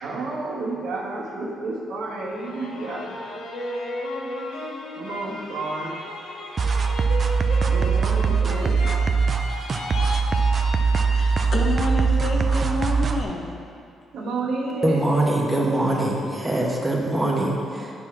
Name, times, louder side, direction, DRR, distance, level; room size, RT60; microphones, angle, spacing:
voice 1, 0.0-3.2 5.0-6.0 7.6-8.8 14.1-15.0, right 3 dB, 80° right, 1.4 m, -30 dB
sound 1, 2.3-12.1 12.5-13.2, left 1 dB, 80° left, 0.8 m, -34 dB
sound 2, 6.6-13.2, right 5 dB, 45° right, 0.4 m, -21 dB
voice 2, 11.1-13.5, left 2 dB, 45° left, 1.0 m, -28 dB
voice 3, 14.8-17.9, right 1 dB, 10° right, 1.2 m, -23 dB
9.4 x 3.1 x 6.0 m
cardioid pair, 90°, 0 cm